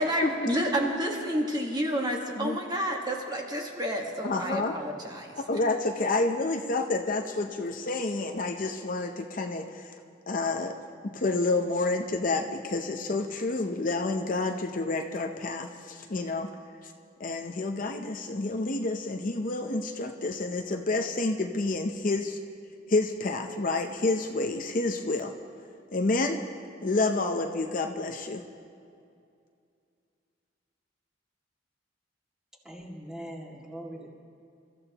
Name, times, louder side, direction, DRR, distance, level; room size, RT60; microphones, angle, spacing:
voice 1, 0.0-5.4, equal, 20° right, 0 dB, 1.5 m, -29 dB
voice 2, 4.2-4.7 5.4-9.9 10.3-10.7 11.0-16.5 17.2-22.4 22.9-25.3 25.9-26.4 26.8-28.4, left 2 dB, 45° left, 4 dB, 0.7 m, -29 dB
voice 3, 32.6-34.1, right 1 dB, 5° right, -3 dB, 2.1 m, -41 dB
28.5 x 14.0 x 2.9 m, 2.4 s
head